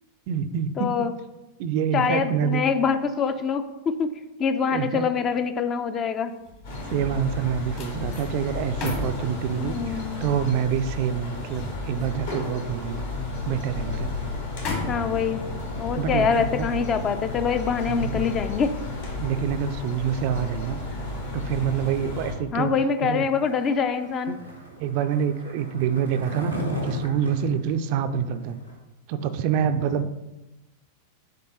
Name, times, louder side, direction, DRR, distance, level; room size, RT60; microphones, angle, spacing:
voice 1, 0.3-1.1 1.6-2.6 4.7-5.1 6.9-13.1 13.4-14.1 16.0-16.7 17.9-18.2 19.2-20.8 21.3-22.7 23.0-23.2 24.3-24.4 24.8-28.6 29.1-30.2, right 8 dB, 45° right, 10 dB, 0.4 m, -27 dB
voice 2, 0.8-1.1 1.9-4.1 4.4-6.3 9.6-10.2 14.9-15.4 15.8-18.7 22.5-24.3, left 6 dB, 30° left, 10 dB, 0.5 m, -25 dB
sound 1, 6.2-19.5 19.9-20.2, left 3 dB, 45° left, 1.7 m, -39 dB
sound 2, 6.6-22.3, left 3 dB, 65° left, 1.9 m, -33 dB
Skateboard, 23.3-28.8, equal, 90° left, 1.1 m, -35 dB
7.4 x 3.6 x 4.1 m, 1.0 s
figure-of-eight pair, 90°, 0 cm